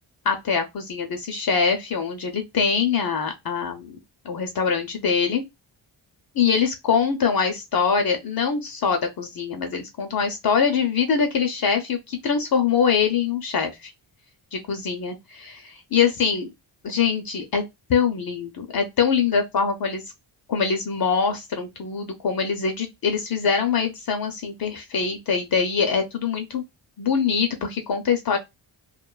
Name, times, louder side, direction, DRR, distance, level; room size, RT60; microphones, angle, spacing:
voice 1, 0.3-3.9 4.2-5.4 6.4-13.9 14.5-16.5 16.8-17.6 17.9-20.0 20.5-26.6 27.0-28.4, left 6 dB, 50° left, 0.6 m, -23 dB
2.4 x 2.2 x 2.3 m
cardioid pair, 105°, 46 cm